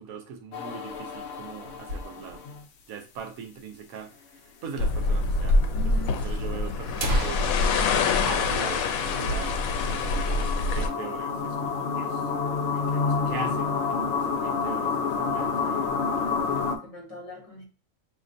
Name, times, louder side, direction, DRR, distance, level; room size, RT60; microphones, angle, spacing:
voice 1, 0.0-2.4 2.9-7.4 8.2-9.5 9.8-12.3 12.7-15.9, right 6 dB, 90° right, 1.2 m, -41 dB
sound 1, 0.5-2.6 5.1-16.8, left 5 dB, 60° left, 0.8 m, -30 dB
sound 2, 1.5-2.6 3.0-3.1 3.3-3.4 4.0-4.1 5.0-5.2 5.5-5.6 6.3-6.4 6.8-9.4 9.7-9.8 10.2-10.5 10.9-11.5, right 1 dB, 65° right, 1.0 m, -35 dB
sound 3, 4.8-10.9, left 3 dB, 85° left, 1.0 m, -25 dB
voice 2, 5.7-6.3 16.5-17.7, right 1 dB, 30° left, 1.1 m, -42 dB
5.1 x 2.9 x 2.6 m
omnidirectional pair, 1.4 m